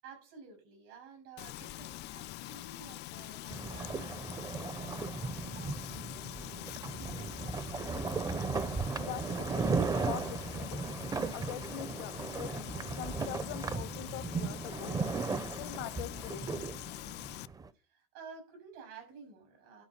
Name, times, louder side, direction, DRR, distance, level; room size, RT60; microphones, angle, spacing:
voice 1, 0.0-6.4 7.0-7.7 17.7-19.8, right 5 dB, 80° right, 7.0 m, -53 dB
Frying (food), 1.4-17.5, left 16 dB, 55° left, 0.5 m, -44 dB
sound 1, 3.5-17.7, right 4 dB, 15° right, 0.5 m, -36 dB
voice 2, 9.0-10.8 11.3-15.0 15.5-16.5, left 15 dB, 80° left, 1.0 m, -43 dB
12.0 x 4.6 x 6.7 m
cardioid pair, 135°, 21 cm